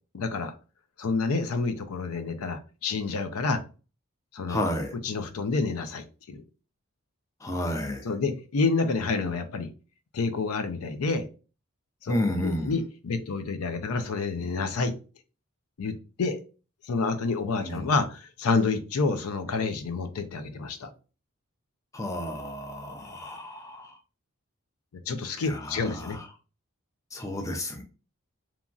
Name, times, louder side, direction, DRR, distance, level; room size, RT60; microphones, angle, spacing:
voice 1, 0.1-0.5 1.0-3.6 4.3-4.6 5.0-6.4 8.0-9.7 10.1-11.2 12.0-12.1 12.4-14.9 15.8-16.4 16.8-20.9 25.1-26.2, left 4 dB, 90° left, 9 dB, 0.5 m, -28 dB
voice 2, 4.5-4.9 7.4-8.1 12.1-12.7 17.6-17.8 21.9-23.9 25.4-26.3 27.1-27.8, left 1 dB, 15° left, 4 dB, 0.3 m, -31 dB
2.9 x 2.6 x 2.3 m, 0.34 s
head